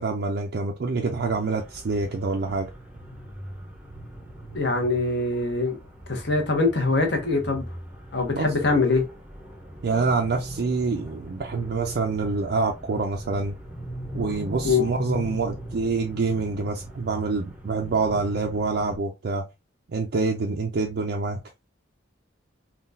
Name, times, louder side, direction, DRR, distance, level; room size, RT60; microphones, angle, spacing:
voice 1, 0.0-2.7 8.3-8.5 9.8-13.5 14.1-19.5 19.9-21.4, right 4 dB, 55° right, 0.4 m, -26 dB
sound 1, 1.1-19.0, equal, 5° right, 0.6 m, -39 dB
voice 2, 4.5-5.8 6.1-7.6 8.1-9.1 14.6-14.9, left 3 dB, 55° left, 1.0 m, -23 dB
3.8 x 2.3 x 2.6 m
head